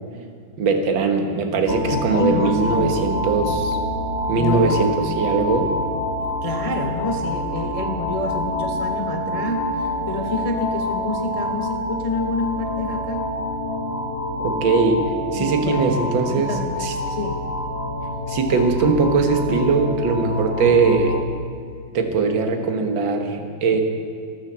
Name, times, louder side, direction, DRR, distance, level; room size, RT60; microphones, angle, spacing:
voice 1, 0.6-3.8 4.3-5.7 14.4-15.1 15.3-16.5 16.8-16.9 18.3-21.2 21.9-23.8, right 4 dB, 65° right, 4 dB, 2.1 m, -20 dB
sound 1, 1.7-21.2, left 1 dB, 30° left, 1.6 m, -27 dB
voice 2, 1.9-3.0 4.4-4.8 6.2-13.3 15.3-16.0 16.3-17.4 18.5-19.1, left 2 dB, 60° left, 3 dB, 0.3 m, -28 dB
13.0 x 13.0 x 7.4 m, 2.3 s
omnidirectional pair, 2.3 m